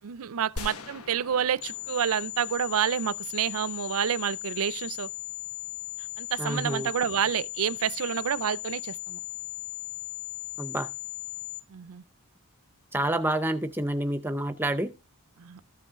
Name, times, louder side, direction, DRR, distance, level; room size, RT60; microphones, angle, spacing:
voice 1, 0.0-5.1 6.2-9.2 11.7-12.0 15.4-15.6, right 8 dB, 70° right, 0.5 m, -29 dB
sound 1, 0.6-3.5, left 2 dB, 80° left, 1.1 m, -43 dB
sound 2, 1.6-11.6, left 19 dB, 50° left, 0.9 m, -37 dB
voice 2, 6.4-6.9 10.6-10.9 12.9-14.9, right 1 dB, 10° right, 0.6 m, -28 dB
14.5 x 5.4 x 3.6 m
head